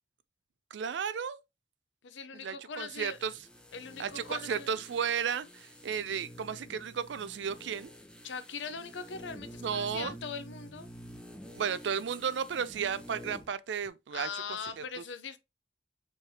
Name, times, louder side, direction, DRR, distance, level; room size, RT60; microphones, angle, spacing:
voice 1, 0.7-1.4 2.3-3.3 4.0-7.9 9.6-10.1 11.6-14.3 14.8-14.9, right 7 dB, 75° right, 0.4 m, -34 dB
voice 2, 2.0-3.2 3.7-4.7 8.2-10.9 14.1-15.4, left 5 dB, 80° left, 0.6 m, -41 dB
sound 1, 2.9-13.5 13.8-13.9, equal, 5° left, 0.6 m, -49 dB
4.5 x 3.3 x 2.8 m
head